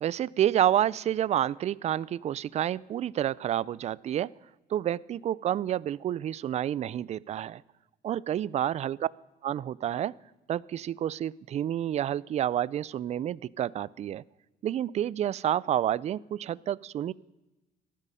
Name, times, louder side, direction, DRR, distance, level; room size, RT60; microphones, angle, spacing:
voice 1, 0.0-4.3 4.7-7.6 8.0-9.1 9.4-10.1 10.5-14.2 14.6-17.1, right 11 dB, 40° right, 22 dB, 0.4 m, -29 dB
15.0 x 12.5 x 5.6 m, 1.0 s
cardioid pair, 110°, 17 cm